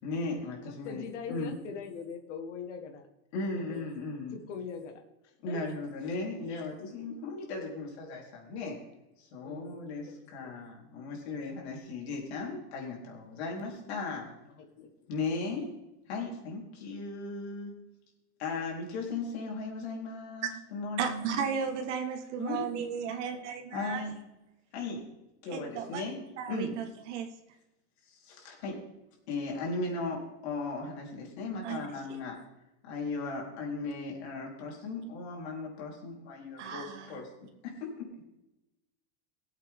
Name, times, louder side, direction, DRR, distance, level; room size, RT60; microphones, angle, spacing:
voice 1, 0.0-1.0 1.3-1.6 3.3-4.4 5.4-8.8 9.2-14.3 14.8-15.7 16.1-17.7 18.4-21.4 22.4-22.7 23.7-24.2 24.7-25.1 25.4-26.2 26.5-26.7 28.1-28.8 29.3-32.4 32.8-37.3 37.6-38.2, left 3 dB, 65° left, -1 dB, 4.1 m, -37 dB
voice 2, 0.6-3.1 3.5-3.9 4.3-5.8 6.5-6.7 9.4-9.6 10.1-10.7 14.5-14.9 15.2-15.6, left 6 dB, 90° left, 5 dB, 1.7 m, -42 dB
voice 3, 21.0-24.0 25.5-26.0 26.4-27.3 31.6-31.9 36.6-37.2, right 7 dB, 80° right, 4 dB, 1.7 m, -34 dB
18.0 x 8.1 x 3.7 m, 0.95 s
supercardioid pair, 180°, 35 cm